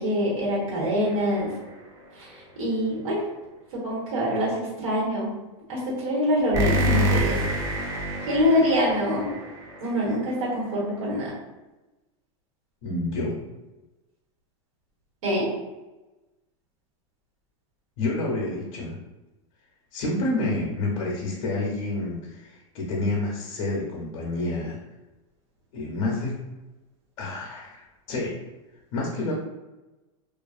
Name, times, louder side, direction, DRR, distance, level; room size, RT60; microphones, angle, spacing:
voice 1, 0.0-1.5 2.1-3.3 3.7-5.3 5.7-7.4 8.3-9.3 9.8-11.3 15.2-15.5, equal, 75° right, -5 dB, 1.3 m, -25 dB
sound 1, 1.0-1.7 6.5-10.2, equal, 20° right, 0.3 m, -27 dB
voice 2, 12.8-13.4 18.0-19.0 19.9-24.8 25.7-26.4 27.2-28.4 28.9-29.3, left 2 dB, 55° left, -3 dB, 0.6 m, -29 dB
2.4 x 2.4 x 2.4 m, 1.1 s
supercardioid pair, 155°, 17 cm